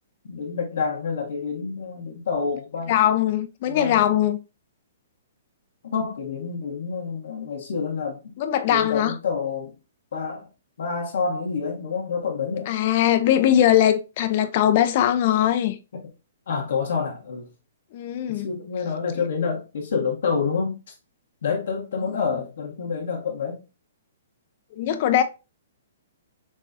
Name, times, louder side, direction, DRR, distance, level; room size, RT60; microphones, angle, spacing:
voice 1, 0.2-3.0 3.7-4.2 5.8-8.4 8.7-9.8 10.1-10.5 10.8-12.7 16.5-17.5 18.3-20.8 21.4-23.6, left 5 dB, 70° left, 1.5 m, -28 dB
voice 2, 2.9-4.4 8.4-9.1 12.7-15.8 17.9-18.5 24.7-25.2, left 11 dB, 50° left, 0.5 m, -20 dB
6.1 x 2.4 x 2.6 m
hypercardioid pair, 135°, 0 cm